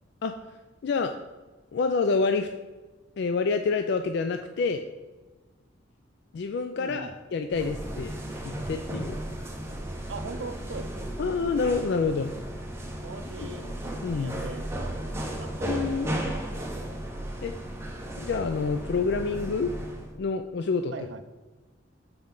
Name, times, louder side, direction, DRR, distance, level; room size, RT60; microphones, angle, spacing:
voice 1, 1.7-2.5 3.2-4.8 6.3-8.1 8.4-9.1 11.2-12.3 13.5-13.6 14.0-14.4 15.6-16.2 17.4-17.5 18.2-19.7 20.1-20.9, left 4 dB, 60° left, 7 dB, 0.3 m, -27 dB
voice 2, 6.8-7.2 10.1-11.1 13.0-13.7 14.1-16.0 20.9-21.2, right 4 dB, 65° right, 9 dB, 0.5 m, -40 dB
sound 1, 7.5-20.1, right 1 dB, 15° right, 0.8 m, -35 dB
7.4 x 4.6 x 3.8 m, 1.2 s
head